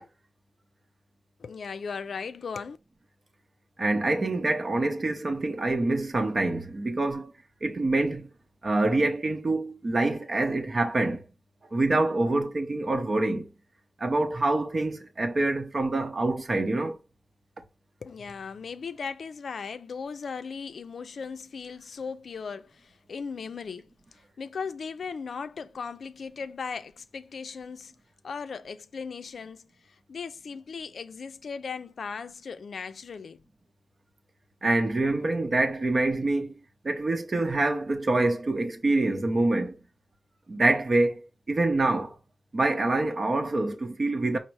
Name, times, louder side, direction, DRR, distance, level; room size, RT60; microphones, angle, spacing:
voice 1, 1.4-2.8 18.0-23.9 24.4-27.9 28.2-29.7 30.1-33.4, left 5 dB, 80° left, 0.3 m, -37 dB
voice 2, 3.8-7.3 7.6-8.3 8.6-11.2 11.7-13.5 14.0-17.0 34.6-36.5 36.8-39.8 40.5-42.1 42.5-44.4, right 2 dB, 50° right, 0.7 m, -26 dB
5.1 x 2.0 x 4.6 m
wide cardioid pair, 85°, 0 cm